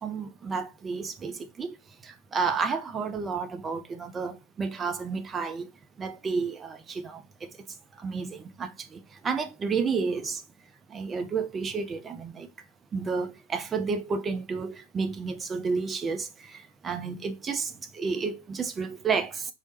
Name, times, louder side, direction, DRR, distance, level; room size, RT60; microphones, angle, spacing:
voice 1, 0.0-1.7 2.3-5.7 6.0-7.2 8.0-10.4 10.9-12.5 12.9-16.3 16.8-19.5, right 5 dB, 20° right, 0.4 m, -31 dB
3.1 x 2.0 x 2.9 m
figure-of-eight pair, 90°, 0 cm